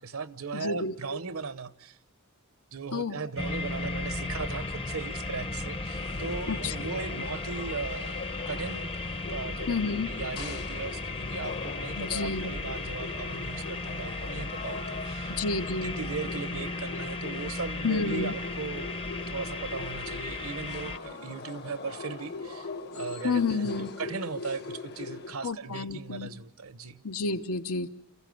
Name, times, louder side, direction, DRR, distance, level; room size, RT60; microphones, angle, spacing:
voice 1, 0.0-2.0 2.7-8.2 8.5-8.9 9.3-9.8 10.1-15.3 15.8-27.0, right 5 dB, 70° right, 0.9 m, -38 dB
voice 2, 0.5-0.9 2.9-3.2 6.5-6.7 9.7-10.1 12.0-12.5 15.3-16.0 17.8-18.3 23.2-23.9 25.4-26.3 27.0-27.9, left 4 dB, 85° left, 1.0 m, -30 dB
sound 1, 3.4-21.0, left 2 dB, 25° left, 0.7 m, -35 dB
sound 2, 5.9-25.3, left 4 dB, 50° left, 1.0 m, -42 dB
28.0 x 15.5 x 7.8 m
head